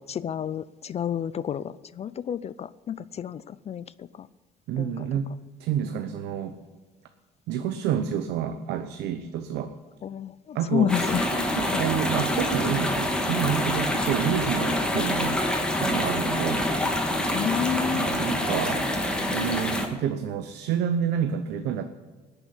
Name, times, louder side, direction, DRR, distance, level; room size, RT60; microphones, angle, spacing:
voice 1, 0.0-4.3 4.8-5.1 10.0-11.3 11.7-11.8 17.3-18.1, left 9 dB, 40° left, 17 dB, 0.4 m, -30 dB
voice 2, 4.7-5.3 5.6-6.6 7.5-9.7 10.5-10.9 11.5-15.4 15.8-16.6 17.9-18.9 19.3-21.8, right 9 dB, 85° right, 8 dB, 0.9 m, -29 dB
sound 1, 10.9-19.9, left 1 dB, 5° left, 2.2 m, -26 dB
18.0 x 7.0 x 9.8 m, 1.3 s
cardioid pair, 110°, 17 cm